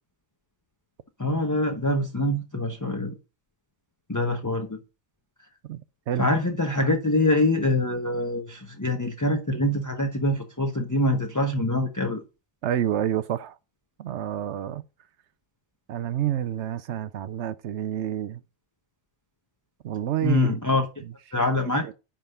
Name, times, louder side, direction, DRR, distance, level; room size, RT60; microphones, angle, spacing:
voice 1, 1.2-3.1 4.1-4.8 6.2-12.2 20.2-20.9 21.3-21.9, left 1 dB, 15° left, 1.0 m, -24 dB
voice 2, 12.6-13.6 14.0-14.8 15.9-18.4 19.8-20.5 21.0-21.1 21.6-21.9, right 11 dB, 85° right, 0.9 m, -28 dB
10.5 x 3.8 x 6.7 m
omnidirectional pair, 1.1 m